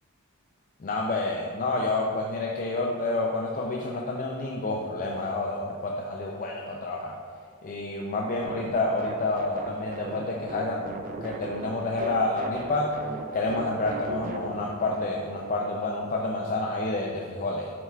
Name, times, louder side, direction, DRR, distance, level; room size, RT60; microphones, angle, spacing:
voice 1, 0.8-7.2 7.6-12.9 13.3-17.7, left 2 dB, 40° left, -1 dB, 0.4 m, -29 dB
sound 1, 8.4-15.9, right 3 dB, 40° right, 0.4 m, -39 dB
7.7 x 5.6 x 2.3 m, 2.1 s
head